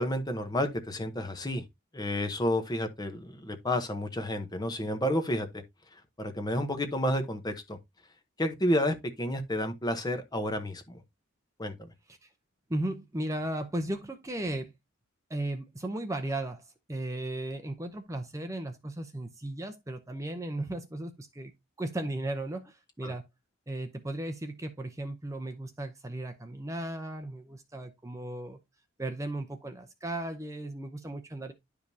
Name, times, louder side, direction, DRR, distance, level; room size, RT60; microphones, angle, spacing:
voice 1, 0.0-1.6 1.9-5.6 6.2-7.8 8.4-11.0 11.6-11.9 23.0-23.1, left 1 dB, 20° left, 0.9 m, -30 dB
voice 2, 12.7-14.7 15.3-16.6 16.9-21.5 21.8-23.3 23.7-28.6 29.0-31.5, right 1 dB, 15° right, 0.7 m, -36 dB
10.5 x 5.1 x 2.7 m
head